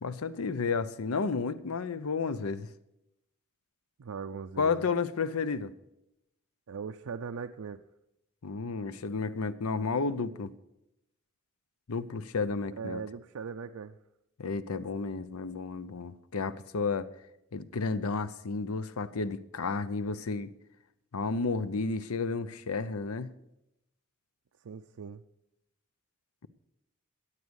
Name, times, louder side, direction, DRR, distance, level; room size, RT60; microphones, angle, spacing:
voice 1, 0.0-2.7 4.6-5.7 8.4-10.5 11.9-13.0 14.4-17.1 17.5-20.5 21.1-23.3, left 4 dB, 80° left, 15 dB, 0.7 m, -32 dB
voice 2, 4.0-4.9 6.7-7.8 12.8-14.0 24.6-25.2, right 5 dB, 85° right, 6 dB, 0.5 m, -39 dB
14.5 x 8.3 x 6.3 m, 0.88 s
head